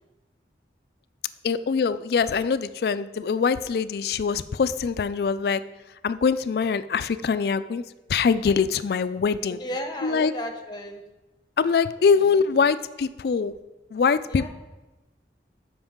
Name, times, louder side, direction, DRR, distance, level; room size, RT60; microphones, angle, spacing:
voice 1, 1.4-5.6 6.0-7.8 8.1-9.6 10.0-10.3 11.6-13.5 13.9-14.5, left 5 dB, 60° left, 14 dB, 0.3 m, -23 dB
voice 2, 9.6-11.0 14.3-14.5, left 1 dB, 25° left, 5 dB, 0.8 m, -33 dB
13.0 x 5.3 x 3.7 m, 1.1 s
head